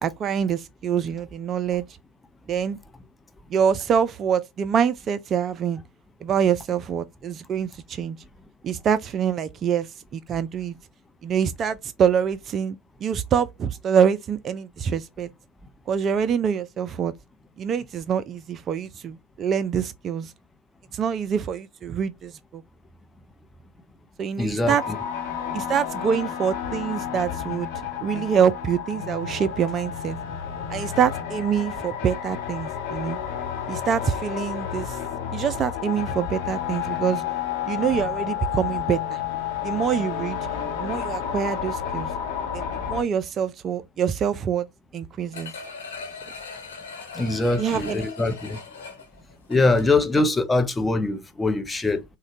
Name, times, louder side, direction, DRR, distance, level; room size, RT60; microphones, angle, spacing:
voice 1, 0.0-1.8 2.5-2.8 3.5-5.8 6.2-8.2 8.6-9.9 10.1-10.7 11.2-15.3 15.9-17.1 17.6-20.3 20.9-22.6 24.2-24.8 25.5-27.7 28.0-30.2 30.7-33.2 33.7-35.0 35.3-37.2 37.7-39.2 39.6-40.4 40.8-42.1 42.5-44.7 44.9-45.5 47.6-48.0, right 7 dB, 35° right, 0.3 m, -25 dB
voice 2, 24.4-25.0 47.1-48.6 49.5-52.0, left 2 dB, 15° left, 0.6 m, -23 dB
sound 1, 24.7-43.0, left 8 dB, 55° left, 0.8 m, -31 dB
sound 2, 45.3-50.1 50.5-50.6, left 4 dB, 75° left, 1.1 m, -39 dB
3.7 x 2.1 x 2.5 m
hypercardioid pair, 80°, 0 cm